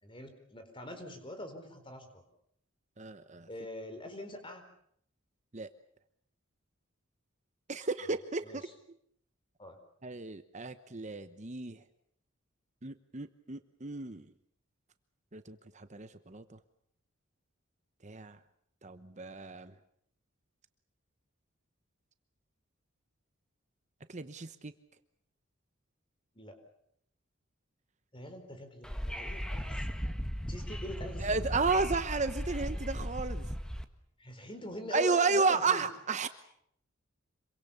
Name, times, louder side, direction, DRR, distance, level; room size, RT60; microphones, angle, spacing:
voice 1, 0.0-2.2 3.5-4.6 8.4-8.6 9.6-9.8 26.4-26.6 28.1-30.0 30.5-31.4 34.2-35.8, equal, 25° left, 7 dB, 4.3 m, -43 dB
voice 2, 3.0-3.5 5.5-5.7 7.7-8.7 10.0-11.8 12.8-14.3 15.3-16.6 18.0-18.4 18.8-19.7 24.1-24.7 31.2-33.5 34.9-36.3, right 4 dB, 35° right, 10 dB, 1.0 m, -33 dB
Wind / Subway metro underground, 28.8-33.8, equal, 5° left, 1.5 m, -37 dB
26.5 x 24.0 x 7.1 m, 0.71 s
head